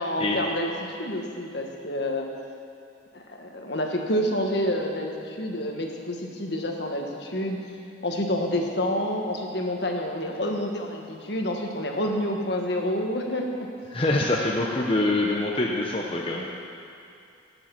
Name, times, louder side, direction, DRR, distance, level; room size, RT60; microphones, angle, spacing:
voice 1, 0.0-2.3 3.1-7.6 8.0-13.7, left 1 dB, 60° left, 1 dB, 1.6 m, -28 dB
voice 2, 13.9-16.5, left 2 dB, 30° left, -2 dB, 0.9 m, -25 dB
19.0 x 7.7 x 6.0 m, 2.6 s
head